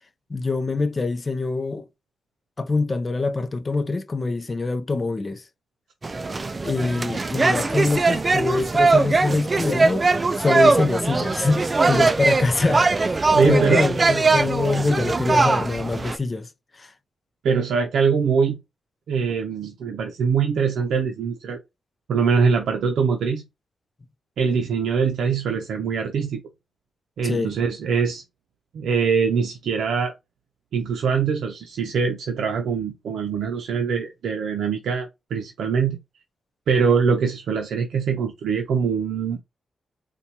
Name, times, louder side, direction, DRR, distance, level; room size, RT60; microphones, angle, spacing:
voice 1, 0.3-1.9 2.6-5.4 6.6-10.0 10.4-13.2 13.4-16.5 16.8-16.9 27.2-27.5, left 3 dB, 30° left, 0.5 m, -24 dB
sound 1, 6.0-16.2, right 3 dB, 30° right, 0.3 m, -21 dB
voice 2, 13.3-13.8 17.4-18.6 19.1-21.6 22.1-23.4 24.4-26.4 27.2-28.2 28.7-30.1 30.7-36.0 36.7-39.4, right 6 dB, 85° right, 0.5 m, -23 dB
4.3 x 2.3 x 2.7 m
cardioid pair, 100°, 0 cm